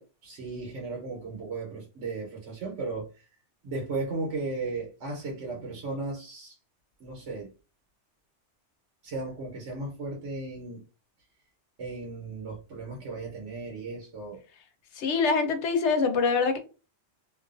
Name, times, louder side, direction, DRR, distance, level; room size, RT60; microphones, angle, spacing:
voice 1, 0.2-3.2 3.6-6.6 7.0-7.5 9.0-10.8 11.8-14.4, right 3 dB, 80° right, 1.2 m, -35 dB
voice 2, 15.0-16.6, left 4 dB, 75° left, 0.9 m, -24 dB
2.6 x 2.3 x 2.4 m
omnidirectional pair, 1.2 m